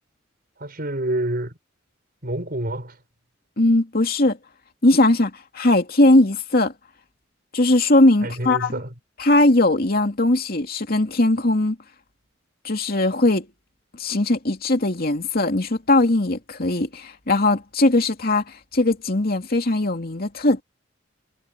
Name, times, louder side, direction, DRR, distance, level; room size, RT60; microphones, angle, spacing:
voice 1, 0.6-1.5 2.2-3.0 8.2-8.9, right 1 dB, 50° right, 5.9 m, -27 dB
voice 2, 3.6-4.4 4.8-6.7 7.5-8.7 9.2-11.8 12.6-13.5 14.0-20.6, left 2 dB, 50° left, 2.6 m, -19 dB
head